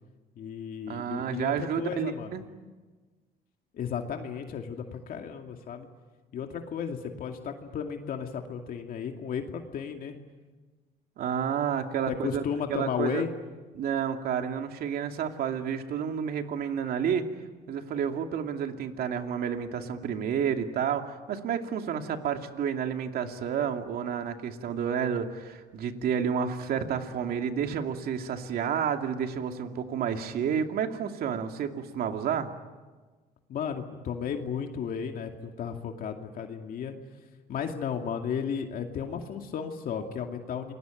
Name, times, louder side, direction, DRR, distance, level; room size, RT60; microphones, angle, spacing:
voice 1, 0.4-2.4 3.7-5.9 6.3-10.2 12.1-13.3 33.5-36.9 37.5-40.7, left 7 dB, 60° left, 4 dB, 2.5 m, -34 dB
voice 2, 0.9-2.4 11.2-12.4 12.7-13.2 13.7-17.3 17.7-32.5, right 7 dB, 65° right, 5 dB, 2.6 m, -30 dB
29.0 x 22.0 x 9.2 m, 1.3 s
cardioid pair, 110°, 17 cm